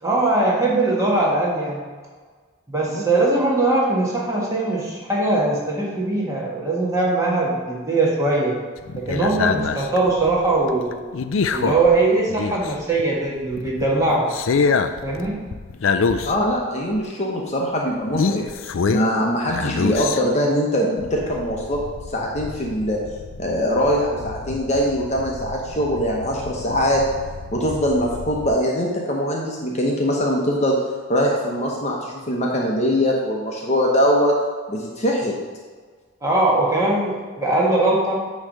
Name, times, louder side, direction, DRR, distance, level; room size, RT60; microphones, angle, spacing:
voice 1, 0.0-1.8 2.7-8.5 8.9-10.9 11.5-14.3 15.0-15.4 36.2-38.2, right 2 dB, 15° right, -4 dB, 1.6 m, -21 dB
sound 1, 8.8-13.0 13.4-16.6 16.9-17.0 18.1-19.2 19.5-20.5 21.0-28.5, left 5 dB, 70° left, 0.4 m, -27 dB
voice 2, 16.2-18.5 18.9-21.8 22.1-23.0 23.4-27.0 27.5-30.7 31.1-34.4 34.7-35.3, equal, 30° left, -1 dB, 1.0 m, -22 dB
9.6 x 3.2 x 6.6 m, 1.5 s
head